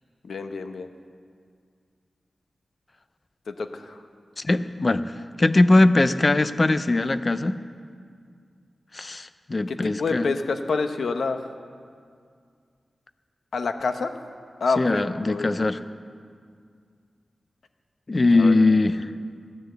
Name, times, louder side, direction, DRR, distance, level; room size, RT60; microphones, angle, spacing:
voice 1, 0.2-0.9 3.5-4.0 9.7-11.4 13.5-14.1 14.6-15.6 18.3-18.6, left 4 dB, 85° left, 7 dB, 0.8 m, -27 dB
voice 2, 4.4-5.1 5.4-7.6 8.9-10.3 14.8-15.8 18.1-19.1, left 2 dB, 30° left, 12 dB, 0.5 m, -20 dB
15.5 x 9.8 x 7.9 m, 2.2 s
wide cardioid pair, 135°, 0 cm